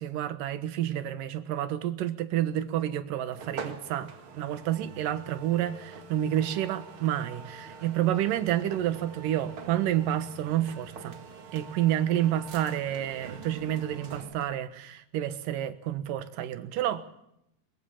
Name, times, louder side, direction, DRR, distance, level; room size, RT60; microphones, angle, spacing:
voice 1, 0.0-4.1 4.3-11.2 11.5-17.0, right 12 dB, 65° right, 2.7 m, -29 dB
sound 1, 3.3-14.6, right 5 dB, 45° right, 1.9 m, -45 dB
22.0 x 21.5 x 7.2 m
omnidirectional pair, 4.7 m